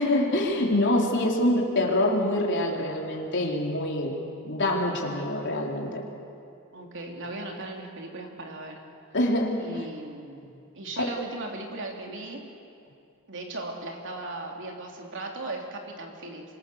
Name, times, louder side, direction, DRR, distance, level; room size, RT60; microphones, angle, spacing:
voice 1, 0.0-4.1 4.4-6.0 9.1-9.9 11.0-11.2, left 1 dB, 55° left, -1 dB, 4.0 m, -25 dB
voice 2, 6.7-8.9 9.6-12.5 13.3-16.4, right 2 dB, 55° right, 1 dB, 3.5 m, -37 dB
27.0 x 25.0 x 7.3 m, 2.5 s
head